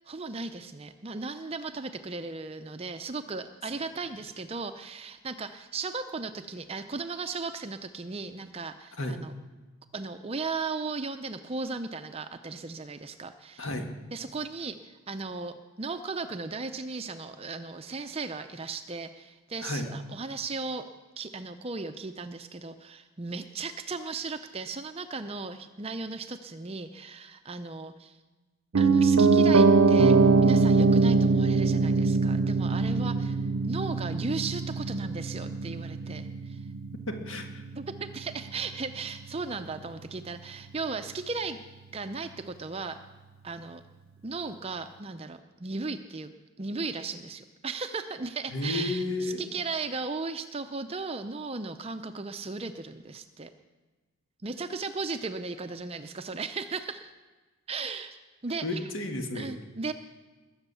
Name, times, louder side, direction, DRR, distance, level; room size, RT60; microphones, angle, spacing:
voice 1, 0.1-9.3 9.9-13.7 14.1-20.9 21.2-28.2 28.7-36.6 37.8-41.6 41.9-43.0 43.4-43.8 44.2-46.3 46.6-53.5 54.4-57.1 57.7-58.8 59.3-59.9, right 4 dB, 30° right, 8 dB, 0.5 m, -36 dB
Piano, 28.7-38.7 39.0-39.1, right 4 dB, 80° right, 0.7 m, -23 dB
voice 2, 37.1-37.6 48.5-49.5 58.6-59.5, left 2 dB, 65° left, 4 dB, 1.8 m, -32 dB
21.0 x 8.0 x 6.9 m, 1.3 s
head